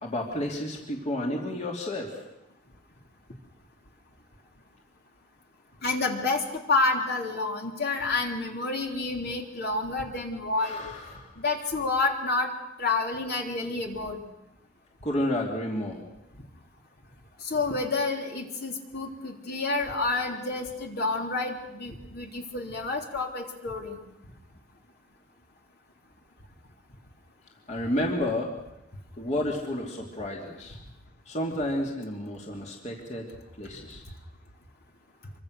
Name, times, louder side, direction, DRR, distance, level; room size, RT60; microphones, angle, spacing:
voice 1, 0.0-2.2 10.6-11.3 15.0-16.0 27.7-28.5 29.2-30.8 31.3-33.3 33.6-34.0, left 1 dB, 35° left, 0 dB, 2.9 m, -31 dB
voice 2, 5.8-10.8 11.4-12.5 12.8-14.2 17.4-24.0, left 3 dB, 55° left, 2 dB, 3.4 m, -29 dB
26.5 x 24.0 x 6.6 m, 0.89 s
head